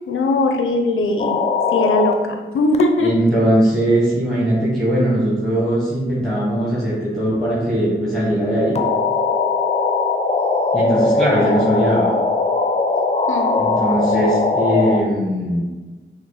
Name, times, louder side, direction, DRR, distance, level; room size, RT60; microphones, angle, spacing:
voice 1, 0.1-1.4 1.7-3.2 13.3-13.6, left 2 dB, 80° left, 4 dB, 0.5 m, -19 dB
sound 1, 1.2-2.1 2.7-2.8 8.8-15.0, left 3 dB, 30° left, 0.5 m, -19 dB
voice 2, 3.0-8.8 10.7-12.1 13.5-15.6, right 1 dB, ahead, -7 dB, 1.1 m, -19 dB
6.0 x 2.1 x 3.9 m, 1.2 s
cardioid pair, 65°, 20 cm